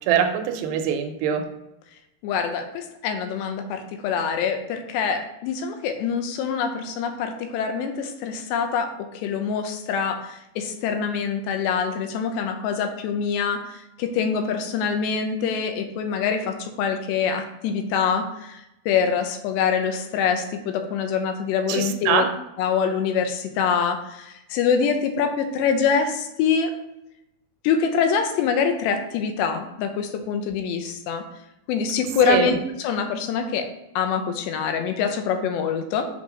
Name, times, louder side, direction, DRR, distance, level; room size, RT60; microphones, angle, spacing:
voice 1, 0.1-1.4 21.7-22.3 32.3-32.5, right 8 dB, 80° right, 6 dB, 2.9 m, -23 dB
voice 2, 2.2-8.9 9.1-18.6 18.9-22.2 22.6-26.7 27.6-31.2 31.7-33.7 34.0-36.1, left 6 dB, 90° left, 6 dB, 3.1 m, -25 dB
7.5 x 5.2 x 5.0 m, 0.88 s
omnidirectional pair, 4.8 m